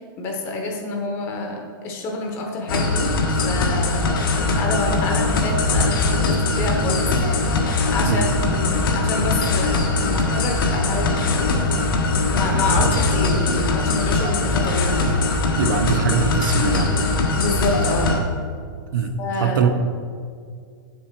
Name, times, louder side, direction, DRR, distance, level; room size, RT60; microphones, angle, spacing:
voice 1, 0.2-3.2 3.4-4.1 4.5-7.1 7.9-11.8 12.3-14.9 17.3-18.1 19.2-19.7, left 2 dB, 20° left, 2 dB, 0.8 m, -27 dB
sound 1, 2.7-18.2, left 3 dB, 75° left, 1.3 m, -21 dB
voice 2, 15.6-16.9 18.9-19.7, right 6 dB, 65° right, 6 dB, 0.8 m, -22 dB
7.5 x 7.0 x 4.5 m, 2.1 s
supercardioid pair, 175°, 12 cm